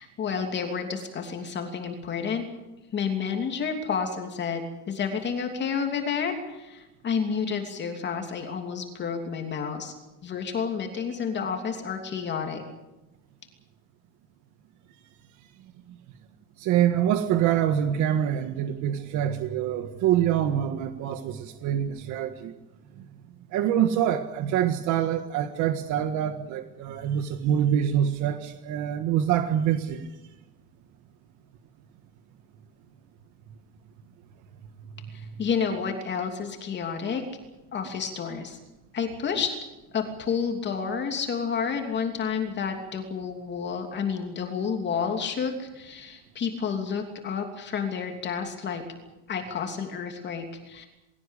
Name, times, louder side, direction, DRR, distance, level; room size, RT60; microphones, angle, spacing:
voice 1, 0.0-2.4 2.9-9.9 10.2-12.6 35.1-37.2 37.7-38.6 38.9-39.5 39.9-48.8 49.3-50.9, left 6 dB, 35° left, 4 dB, 3.0 m, -30 dB
voice 2, 16.6-22.5 23.0-23.1 23.5-30.1 48.6-48.7, right 10 dB, 65° right, 8 dB, 1.6 m, -25 dB
21.5 x 17.0 x 8.4 m, 1.0 s
cardioid pair, 155°, 32 cm